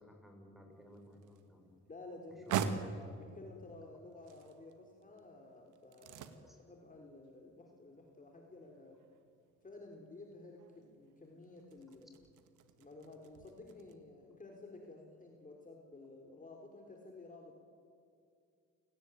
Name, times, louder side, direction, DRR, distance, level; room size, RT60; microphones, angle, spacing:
voice 1, 0.0-1.7 2.5-3.0 6.4-6.6 12.0-12.1, equal, ahead, 3 dB, 6.9 m, -57 dB
sound 1, 0.7-13.9, right 7 dB, 90° right, 1.8 m, -46 dB
voice 2, 1.9-2.9 3.2-9.0 9.6-12.1 12.8-17.6, left 2 dB, 25° left, 1 dB, 3.8 m, -53 dB
29.0 x 18.0 x 9.3 m, 2.4 s
cardioid pair, 90°, 30 cm